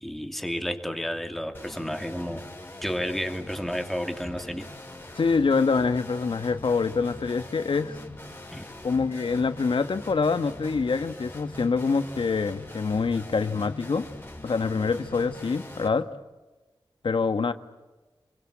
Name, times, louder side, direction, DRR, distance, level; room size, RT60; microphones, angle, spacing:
voice 1, 0.0-2.4 2.8-4.7 8.5-8.6, equal, ahead, 6 dB, 2.7 m, -31 dB
sound 1, 1.5-15.9, left 1 dB, 25° left, 5.1 m, -42 dB
voice 2, 5.1-8.0 8.8-14.1 14.4-16.1 17.0-17.5, left 4 dB, 70° left, 11 dB, 1.3 m, -25 dB
27.5 x 22.5 x 8.7 m, 1.2 s
wide cardioid pair, 100°, 9 cm